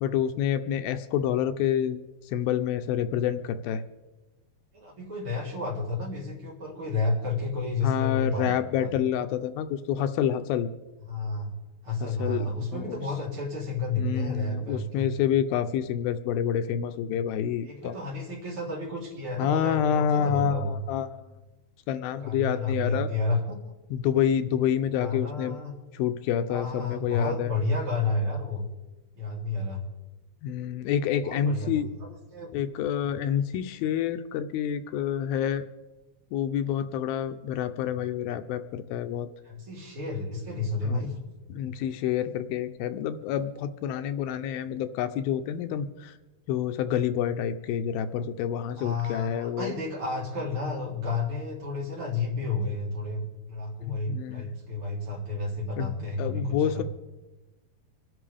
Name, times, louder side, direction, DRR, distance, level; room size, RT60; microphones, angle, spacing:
voice 1, 0.0-2.0 2.3-3.8 7.8-10.7 12.0-13.0 14.0-18.0 19.4-21.3 21.9-23.1 23.9-25.6 25.9-27.5 30.4-31.9 32.5-35.7 36.3-39.3 40.8-41.1 41.5-46.1 46.5-49.7 53.8-54.6 55.8-56.8, left 9 dB, 80° left, 8 dB, 2.5 m, -28 dB
voice 2, 4.7-9.2 11.1-11.5 11.8-15.1 17.6-20.8 22.2-23.6 25.0-25.7 26.5-28.7 29.2-29.8 31.2-32.5 39.4-41.3 48.8-56.8, left 3 dB, 35° right, -4 dB, 4.1 m, -31 dB
25.5 x 11.0 x 3.4 m, 1.1 s
omnidirectional pair, 4.3 m